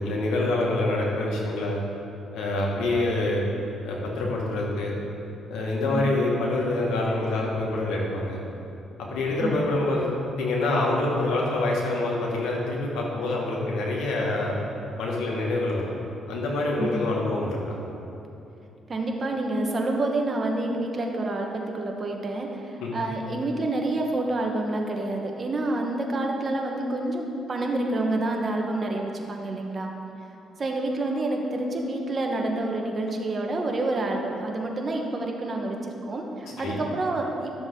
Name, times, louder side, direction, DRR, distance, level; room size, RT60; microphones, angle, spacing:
voice 1, 0.0-1.8 2.3-3.4 3.8-4.9 5.5-8.4 9.1-14.6 15.0-15.9 16.3-17.8 22.8-23.1 36.4-36.8, left 2 dB, 85° left, -2 dB, 1.9 m, -26 dB
voice 2, 16.8-17.1 18.9-29.9 30.6-35.8 36.1-37.5, right 2 dB, 35° right, 1 dB, 1.3 m, -28 dB
13.0 x 7.0 x 3.9 m, 2.9 s
cardioid pair, 85°, 0 cm